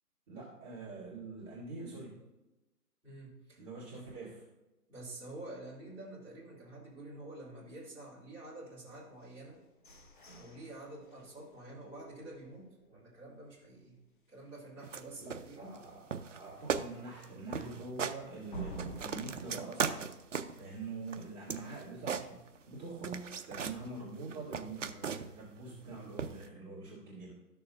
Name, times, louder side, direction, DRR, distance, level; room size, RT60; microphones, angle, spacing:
voice 1, 0.3-2.2 3.6-4.4 15.2-20.1 20.5-27.3, right 3 dB, 25° right, -8 dB, 2.2 m, -45 dB
voice 2, 3.0-3.6 3.9-4.1 4.9-9.6 10.3-14.0 14.3-15.7, right 2 dB, 5° right, -13 dB, 2.8 m, -48 dB
sound 1, 9.2-13.1 13.6-13.7 14.0-14.4 14.8-14.9 15.4-15.5 18.5-21.2, right 3 dB, 30° left, 0.8 m, -49 dB
sound 2, 14.8-15.0 15.3-15.8 16.1-16.4 16.7-16.9 17.2-17.3 17.5-18.2 18.6-20.6 21.1-22.7 23.0-23.8 24.2-25.4 26.2-26.5, right 6 dB, 50° right, 0.6 m, -37 dB
12.5 x 6.8 x 2.5 m, 1.0 s
hypercardioid pair, 160°, 48 cm